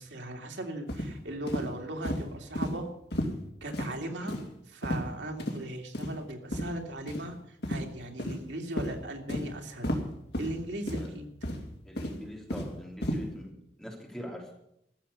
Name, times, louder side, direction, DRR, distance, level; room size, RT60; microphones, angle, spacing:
voice 1, 0.0-2.9 3.6-4.4 4.7-7.4 7.7-9.9 10.4-11.3, right 1 dB, 90° right, 2 dB, 2.5 m, -38 dB
sound 1, 0.9-1.1 1.5-1.6 2.0-2.2 2.6-2.7 3.1-3.3 3.7-3.9 4.3-4.5 4.8-5.1 5.4-5.6 5.9-6.1 6.5-6.7 7.1-7.2 7.6-7.8 8.2-8.4 8.8-8.9 9.3-9.4 9.8-10.0 10.3-10.5 10.9-11.1 11.4-11.6 12.0-12.7 13.0-13.2, equal, 70° left, 2.7 m, -32 dB
voice 2, 11.8-14.5, equal, 5° left, -1 dB, 3.1 m, -43 dB
14.5 x 6.9 x 9.8 m, 0.79 s
head